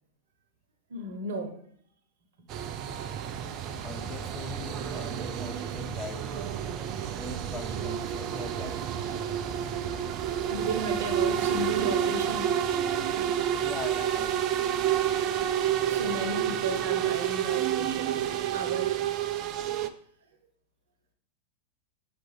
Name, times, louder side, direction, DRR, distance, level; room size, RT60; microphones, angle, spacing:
voice 1, 0.9-1.6 2.4-2.5 2.7-3.2 10.5-12.5 15.9-19.0, right 2 dB, 60° right, 7 dB, 0.9 m, -35 dB
sound 1, 2.5-19.9, right 10 dB, 35° right, 0.4 m, -29 dB
sound 2, 3.6-16.8, left 1 dB, 65° left, 2.4 m, -52 dB
voice 2, 3.8-6.3 7.2-8.8 13.6-14.3, left 5 dB, 20° left, 6 dB, 0.7 m, -42 dB
7.6 x 5.9 x 3.3 m, 0.63 s
figure-of-eight pair, 90°, 0 cm